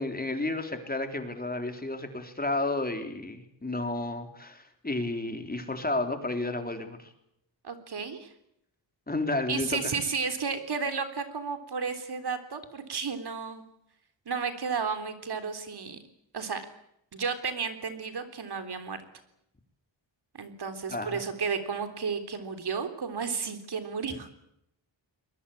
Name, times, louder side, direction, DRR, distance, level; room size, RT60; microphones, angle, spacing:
voice 1, 0.0-7.1 9.1-9.9 20.9-21.2, left 2 dB, 20° left, 6 dB, 3.8 m, -32 dB
voice 2, 7.6-8.3 9.5-13.6 14.3-16.0 16.3-16.6 17.1-19.0 20.3-24.3, right 5 dB, 55° right, 8 dB, 3.7 m, -33 dB
23.0 x 21.5 x 8.7 m, 0.78 s
cardioid pair, 90°, 46 cm